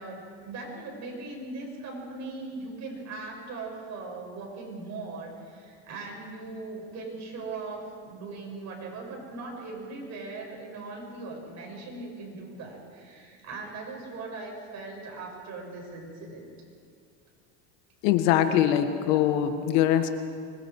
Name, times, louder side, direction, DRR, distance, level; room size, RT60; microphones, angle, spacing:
voice 1, 0.0-16.5, right 3 dB, 50° right, 0 dB, 7.2 m, -39 dB
voice 2, 18.0-20.1, left 11 dB, 80° left, 8 dB, 1.8 m, -22 dB
25.5 x 21.5 x 4.9 m, 2.2 s
supercardioid pair, 110°, 36 cm